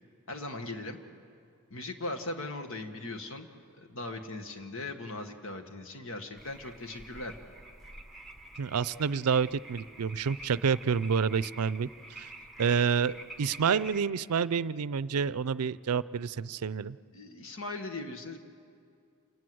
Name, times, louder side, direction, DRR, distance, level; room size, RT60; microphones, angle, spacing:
voice 1, 0.3-1.0 1.7-3.5 3.7-7.3 12.4-12.5 17.1-18.4, left 2 dB, 65° left, 6 dB, 1.7 m, -39 dB
sound 1, 6.4-14.0, right 1 dB, ahead, 1.3 m, -48 dB
voice 2, 8.6-12.3 12.6-17.0, right 6 dB, 90° right, 18 dB, 0.5 m, -28 dB
28.0 x 19.0 x 7.9 m, 2.4 s
head